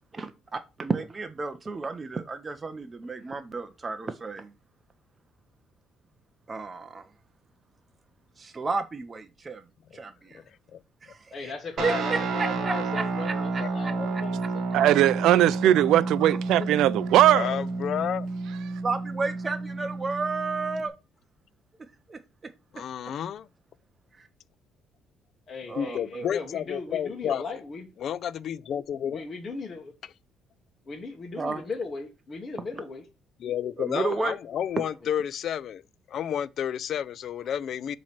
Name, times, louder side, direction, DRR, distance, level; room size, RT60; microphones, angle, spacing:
voice 1, 0.1-4.5 6.5-7.1 8.4-9.6 9.9-10.4 11.0-11.5 11.8-13.9 18.8-20.9 22.1-22.2 25.7-26.3 31.4-31.6 33.8-34.3, right 4 dB, 25° right, 0.5 m, -32 dB
voice 2, 10.3-10.8 11.1-11.2 13.6-14.1 16.6-16.7 17.3-18.3 22.7-23.5 25.8-27.6 28.0-29.2 33.4-35.8 36.1-38.0, left 9 dB, 55° left, 0.3 m, -31 dB
voice 3, 11.3-14.7 25.5-27.9 29.1-29.9 30.9-33.0, left 4 dB, 35° left, 1.2 m, -37 dB
Guitar, 11.8-20.9, right 3 dB, 55° right, 1.1 m, -31 dB
voice 4, 14.7-17.6, right 13 dB, 80° right, 0.3 m, -20 dB
7.2 x 3.0 x 5.8 m
cardioid pair, 130°, 0 cm